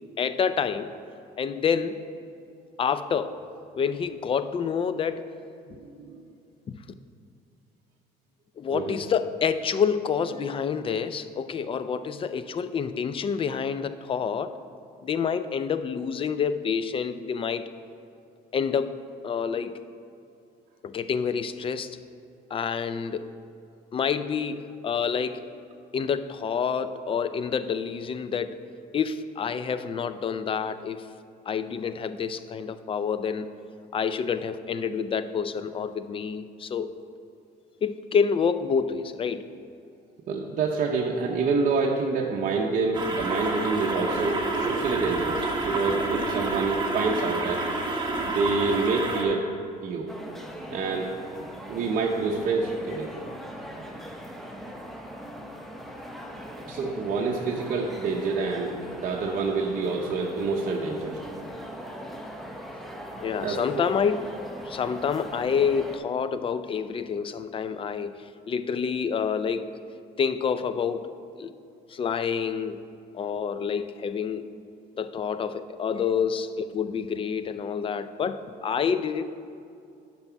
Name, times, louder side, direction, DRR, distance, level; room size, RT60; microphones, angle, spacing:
voice 1, 0.2-0.9 1.4-1.9 2.8-3.4 3.7-5.3 6.7-6.8 8.6-14.5 15.0-17.7 18.5-19.0 19.2-19.8 20.8-21.9 22.5-23.3 23.9-25.4 25.9-28.6 28.9-31.1 31.5-33.5 33.9-36.9 37.8-39.5 63.2-64.2 64.7-68.1 68.5-69.7 70.2-71.1 71.4-71.5 71.9-72.8 73.1-74.4 75.0-79.2, left 6 dB, 30° left, 12 dB, 0.4 m, -28 dB
voice 2, 5.8-6.2 8.7-9.0 40.3-47.6 48.3-49.4 49.8-50.1 50.7-51.1 51.7-53.1 53.6-53.7 56.7-58.7 59.0-61.2 63.4-63.8, right 4 dB, 55° right, -1 dB, 0.7 m, -27 dB
sound 1, 42.9-49.2, right 2 dB, 25° right, 1.3 m, -29 dB
sound 2, 50.1-66.0, equal, ahead, 0.8 m, -40 dB
9.6 x 6.0 x 4.5 m, 2.5 s
cardioid pair, 110°, 17 cm